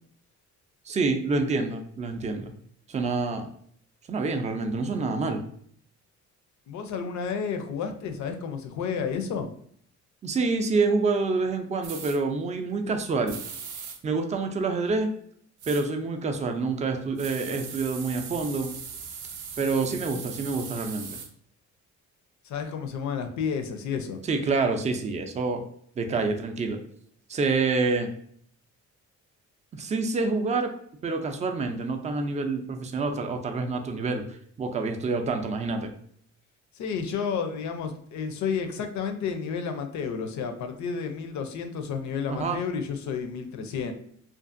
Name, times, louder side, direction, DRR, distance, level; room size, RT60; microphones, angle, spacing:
voice 1, 0.9-2.5 2.9-3.5 4.1-5.4 10.2-13.4 14.0-15.1 15.7-18.7 19.6-21.2 24.3-25.6 26.0-26.8 27.3-28.1 29.7-30.7 31.0-34.2 34.6-35.9 42.3-42.6, right 3 dB, 25° right, 5 dB, 0.4 m, -27 dB
voice 2, 6.7-9.5 22.4-24.2 36.7-43.9, left 6 dB, 70° left, 6 dB, 0.5 m, -31 dB
sound 1, 11.8-12.2 13.3-14.0 15.6-15.8 17.2-21.3, right 6 dB, 80° right, 0.5 m, -39 dB
2.5 x 2.4 x 2.5 m, 0.62 s
cardioid pair, 90°, 30 cm